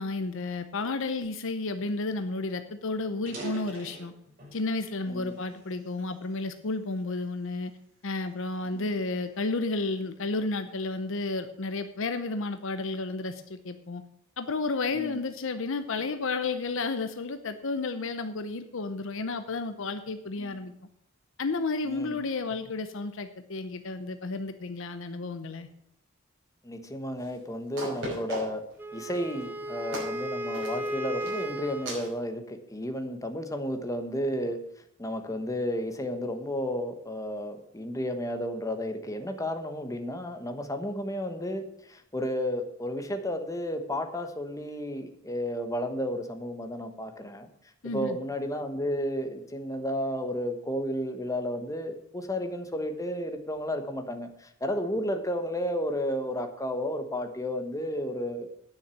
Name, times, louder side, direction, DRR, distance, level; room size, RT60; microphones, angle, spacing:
voice 1, 0.0-4.1 4.5-7.7 8.0-14.0 14.4-20.7 21.4-25.7 47.8-48.2, left 3 dB, 65° left, 9 dB, 0.7 m, -32 dB
sound 1, 2.5-2.6 3.1-4.7 5.3-6.5 7.1-7.4 8.0-10.0, right 1 dB, 45° right, 6.1 m, -44 dB
voice 2, 5.1-5.4 8.7-9.0 14.9-15.2 20.4-20.6 21.9-22.2 26.6-28.6 28.9-34.6 35.0-47.5 47.8-58.5, equal, 15° left, 6 dB, 1.2 m, -32 dB
sound 2, 27.2-27.3 27.8-28.7 29.1-29.4 29.9-30.2 30.5-30.9 31.2-31.5 31.9-32.1, right 1 dB, 65° right, 5.7 m, -37 dB
Wind instrument woodwind instrument, 28.8-32.0, right 1 dB, 10° right, 1.0 m, -35 dB
9.9 x 6.4 x 8.4 m, 0.72 s
head